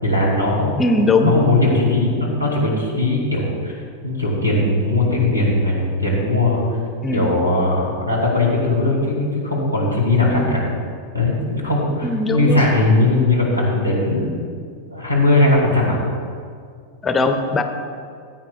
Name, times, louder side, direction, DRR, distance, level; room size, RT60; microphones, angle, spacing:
voice 1, 0.0-3.8 4.0-6.7 7.1-10.6 11.1-14.3 14.9-16.0, left 2 dB, 85° right, -3 dB, 2.5 m, -19 dB
voice 2, 0.8-1.3 7.0-7.3 10.3-10.6 12.0-12.7 17.0-17.6, left 2 dB, 15° left, 7 dB, 0.7 m, -19 dB
15.0 x 8.9 x 2.4 m, 2.2 s
figure-of-eight pair, 90°, 0 cm